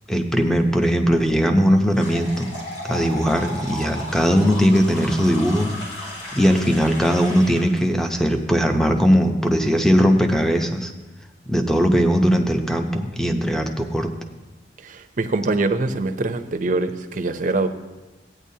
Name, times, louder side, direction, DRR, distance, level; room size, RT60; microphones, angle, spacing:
voice 1, 0.1-2.5 2.8-5.7 6.3-10.9 11.5-14.1, equal, 5° left, 5 dB, 0.6 m, -19 dB
sound 1, 1.9-7.8, left 1 dB, 65° left, 2.8 m, -35 dB
voice 2, 14.8-17.7, right 2 dB, 45° right, 7 dB, 0.6 m, -23 dB
15.5 x 9.1 x 2.8 m, 1.2 s
head